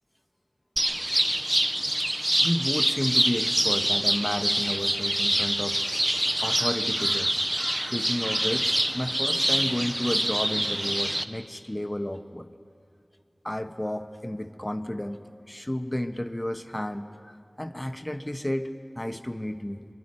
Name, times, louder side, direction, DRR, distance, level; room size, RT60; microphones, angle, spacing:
sound 1, 0.8-11.2, right 1 dB, 20° right, 0.8 m, -25 dB
voice 1, 2.4-5.8 6.4-7.4 7.9-12.5 13.4-15.2 15.5-19.9, left 1 dB, 20° left, 9 dB, 1.0 m, -32 dB
25.0 x 11.0 x 9.6 m, 2.4 s
wide cardioid pair, 45°, 0 cm